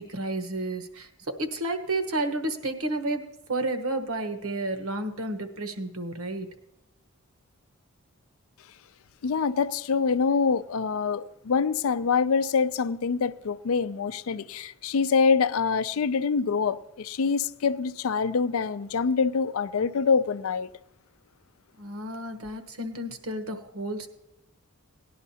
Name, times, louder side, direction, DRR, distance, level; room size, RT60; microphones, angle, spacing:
voice 1, 0.0-3.2 3.5-6.5 21.8-24.1, right 2 dB, 80° right, 1.2 m, -31 dB
voice 2, 9.2-20.7, left 5 dB, 75° left, 0.4 m, -25 dB
18.5 x 11.0 x 2.8 m
head